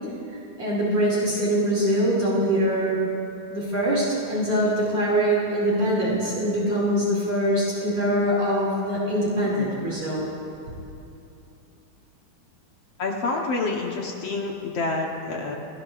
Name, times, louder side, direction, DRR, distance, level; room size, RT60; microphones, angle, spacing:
voice 1, 0.3-3.0 3.5-10.3, equal, 50° right, -6 dB, 3.4 m, -23 dB
voice 2, 13.0-15.6, left 3 dB, 65° left, 0 dB, 1.6 m, -28 dB
27.0 x 18.5 x 2.5 m, 2.8 s
omnidirectional pair, 4.1 m